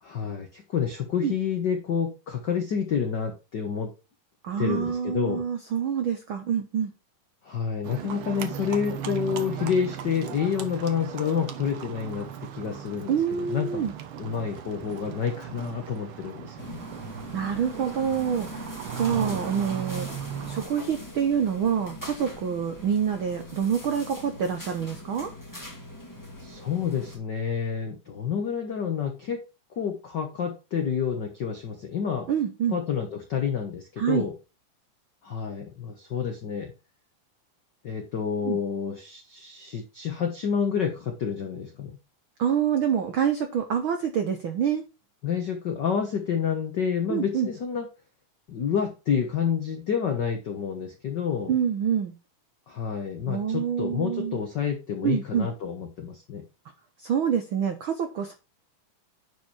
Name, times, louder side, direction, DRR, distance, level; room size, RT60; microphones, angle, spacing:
voice 1, 0.0-3.9 4.6-5.4 7.4-13.9 14.2-16.8 19.1-19.4 26.4-29.4 29.8-32.3 32.7-34.3 35.2-36.7 37.8-42.0 45.2-47.9 48.5-51.5 52.7-56.4, left 7 dB, 75° left, 5 dB, 0.9 m, -29 dB
voice 2, 4.4-6.9 13.1-13.9 17.3-18.5 19.0-20.1 20.5-25.3 32.3-32.8 34.0-34.3 38.4-38.6 42.4-44.8 47.1-47.5 51.5-52.1 53.3-54.4 55.0-55.5 57.0-58.3, right 8 dB, 85° right, 7 dB, 1.1 m, -26 dB
Livestock farm animals working animals, 7.8-20.7, right 9 dB, 70° right, 1.3 m, -37 dB
sound 1, 16.6-27.2, equal, 10° left, 1.3 m, -41 dB
10.0 x 4.8 x 4.5 m, 0.28 s
omnidirectional pair, 3.7 m